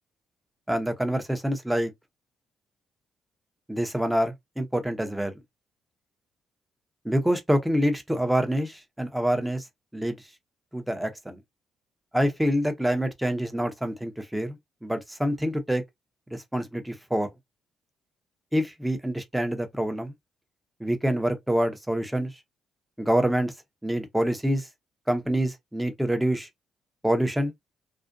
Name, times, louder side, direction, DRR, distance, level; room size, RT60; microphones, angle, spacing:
voice 1, 0.7-1.9 3.7-5.3 7.0-9.6 9.9-10.2 10.7-11.4 12.1-15.8 16.3-17.3 18.5-20.1 20.8-22.3 23.0-23.5 23.8-24.7 25.1-26.5 27.0-27.5, equal, 5° right, 0.7 m, -26 dB
2.4 x 2.1 x 2.5 m
cardioid pair, 90°, 0 cm